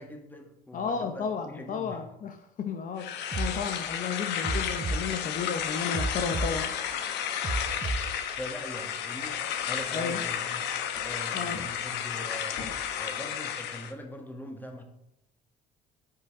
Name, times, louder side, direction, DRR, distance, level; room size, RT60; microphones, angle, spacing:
voice 1, 0.0-2.0 7.8-10.7 11.0-12.6 13.0-14.8, left 1 dB, 10° left, 3 dB, 1.9 m, -42 dB
voice 2, 0.7-6.7 9.9-10.2 11.3-11.6, left 6 dB, 55° left, 7 dB, 0.9 m, -33 dB
sound 1, 3.0-13.9, left 9 dB, 85° left, 1.1 m, -32 dB
sound 2, 3.3-3.5 4.4-5.0 5.9-6.5 7.4-8.0, right 2 dB, 20° right, 0.8 m, -30 dB
sound 3, 3.6-12.9, left 4 dB, 70° left, 2.7 m, -50 dB
9.0 x 5.7 x 6.7 m, 0.85 s
cardioid pair, 110°, 17 cm